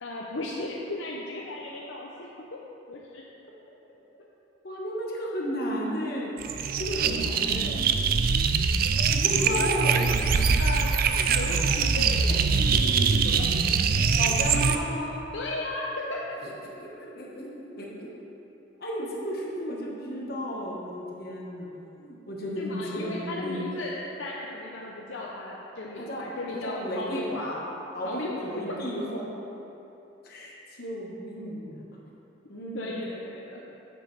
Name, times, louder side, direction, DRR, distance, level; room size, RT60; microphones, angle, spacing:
voice 1, 0.0-2.6 2.9-3.2 9.5-9.8 10.1-11.0 11.2-13.5 15.3-16.4 22.5-27.6 28.0-28.8 32.7-33.6, left 2 dB, 85° left, -3 dB, 0.8 m, -36 dB
voice 2, 4.6-7.9 9.1-10.6 14.1-15.3 16.4-16.5 16.8-18.1 18.8-23.7 26.0-27.6 27.9-29.2 30.2-31.8 32.5-32.9, equal, 55° left, -3 dB, 1.5 m, -33 dB
sound 1, 6.4-14.8, right 5 dB, 50° right, 0.4 m, -23 dB
9.7 x 7.7 x 3.4 m, 2.9 s
head